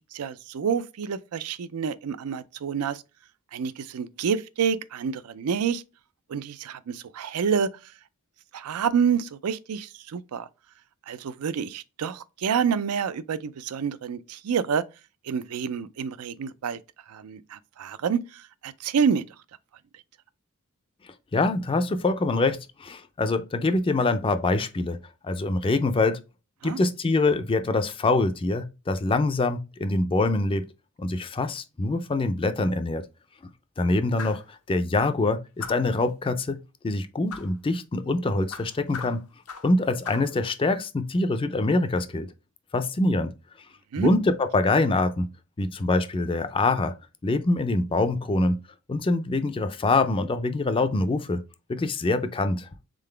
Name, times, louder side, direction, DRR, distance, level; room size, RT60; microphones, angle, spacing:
voice 1, 0.1-3.0 3.5-5.8 6.3-7.7 8.5-10.5 11.1-14.8 15.3-16.8 17.1-18.2 18.6-19.2 26.6-26.8 43.9-44.1, right 6 dB, 75° right, 0.4 m, -28 dB
voice 2, 21.3-25.0 25.2-26.2 26.6-30.6 31.0-33.0 33.8-39.2 39.6-42.3 42.7-43.3 44.0-45.3 45.6-46.9 47.2-48.6 48.9-51.4 51.7-52.7, left 2 dB, 25° left, 0.4 m, -24 dB
sound 1, 34.2-34.5 35.6-36.0 37.3-37.5 38.5-39.8 40.0-40.3, left 6 dB, 80° left, 0.7 m, -39 dB
3.8 x 3.7 x 3.2 m
head